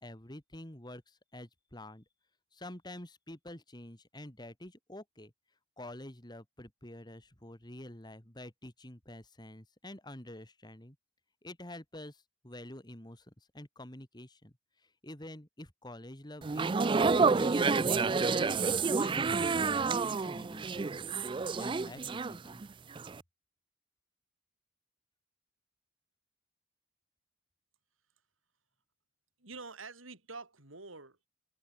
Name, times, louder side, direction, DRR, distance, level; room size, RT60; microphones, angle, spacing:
voice 1, 0.0-2.0 2.5-5.3 5.8-11.0 11.4-16.8 17.1-21.2 21.6-22.6, left 1 dB, 20° left, 2.6 m, -48 dB
sound 1, 16.4-22.7 23.0-23.2, right 4 dB, 25° right, 0.4 m, -29 dB
voice 2, 29.4-31.3, right 3 dB, 85° right, 4.8 m, -47 dB
head